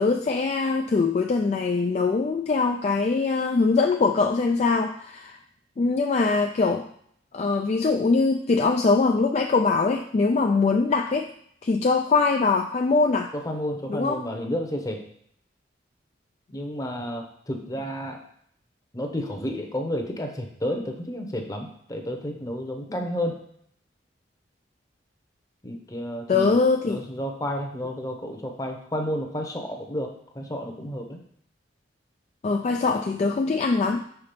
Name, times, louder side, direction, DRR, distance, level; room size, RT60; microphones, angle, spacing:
voice 1, 0.0-5.4 5.8-6.8 7.3-11.3 11.6-13.3 13.9-14.2 26.3-27.0 32.4-34.0, left 4 dB, 40° left, 4 dB, 0.3 m, -22 dB
voice 2, 13.3-15.0 16.5-18.2 18.9-23.4 25.6-26.6 26.8-31.2, equal, 20° left, 3 dB, 0.8 m, -31 dB
5.8 x 3.8 x 5.2 m, 0.67 s
head